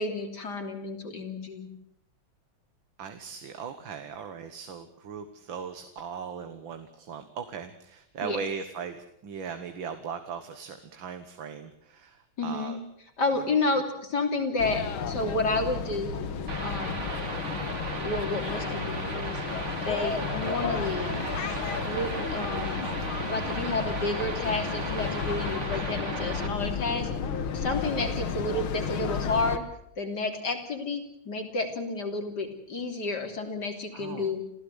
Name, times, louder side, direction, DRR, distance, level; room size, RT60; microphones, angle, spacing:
voice 1, 0.0-1.7 8.2-8.4 12.4-12.8 13.2-16.2 16.6-16.9 18.0-19.4 19.8-21.2 21.8-22.9 23.3-27.1 27.5-29.6 30.0-34.4, left 3 dB, 55° left, 5 dB, 3.8 m, -30 dB
voice 2, 3.0-12.8 13.4-13.5 18.7-18.9 25.7-25.9 27.8-28.0 33.9-34.4, right 6 dB, 70° right, 8 dB, 2.1 m, -39 dB
sound 1, 14.6-29.6, left 6 dB, 90° left, 2.3 m, -33 dB
sound 2, 16.5-26.5, right 2 dB, 35° right, 2.9 m, -36 dB
28.0 x 15.5 x 8.2 m, 0.76 s
omnidirectional pair, 2.2 m